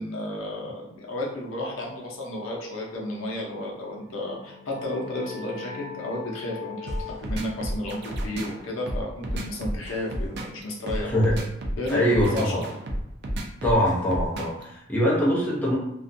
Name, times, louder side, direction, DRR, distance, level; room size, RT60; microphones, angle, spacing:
voice 1, 0.0-11.4 11.8-12.6, left 1 dB, 85° left, -2 dB, 0.6 m, -32 dB
sound 1, 4.1-9.4, left 7 dB, 20° right, 1.0 m, -43 dB
sound 2, 6.9-14.6, equal, 60° right, 0.4 m, -31 dB
voice 2, 11.0-11.3 11.9-12.7 13.6-15.8, equal, 10° left, -6 dB, 0.6 m, -23 dB
2.4 x 2.1 x 2.5 m, 0.81 s
head